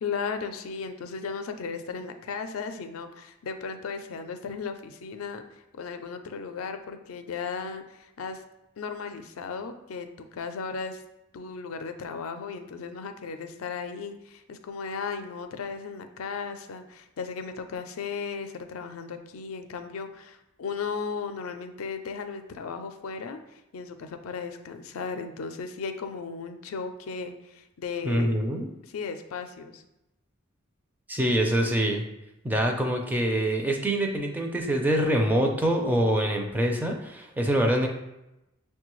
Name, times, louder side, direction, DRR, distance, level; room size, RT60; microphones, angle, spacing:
voice 1, 0.0-5.4 5.7-8.4 8.8-11.0 11.3-28.3 28.8-29.8, left 5 dB, 80° left, 7 dB, 0.4 m, -36 dB
voice 2, 28.0-28.7 31.1-32.0 32.4-37.9, right 1 dB, 10° right, 2 dB, 0.4 m, -25 dB
6.1 x 2.2 x 3.0 m, 0.92 s
head